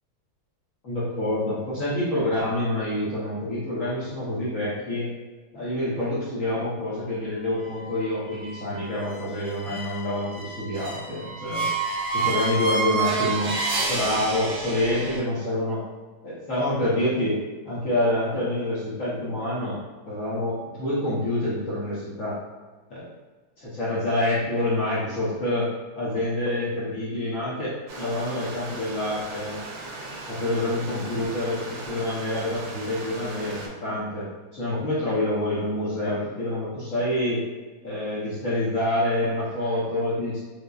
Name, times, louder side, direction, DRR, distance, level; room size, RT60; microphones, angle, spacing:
voice 1, 0.8-5.1 5.5-11.7 12.1-13.5 13.8-15.8 16.2-17.4 17.6-19.8 20.0-22.4 22.9-23.1 23.6-25.7 26.0-29.6 30.3-37.4 37.8-40.4, left 1 dB, 55° left, -10 dB, 0.9 m, -27 dB
sound 1, 7.5-15.2, right 3 dB, 65° right, 1.4 m, -30 dB
Stream, 27.9-33.7, right 2 dB, 85° right, 0.8 m, -38 dB
5.2 x 2.1 x 2.3 m, 1.3 s
omnidirectional pair, 2.4 m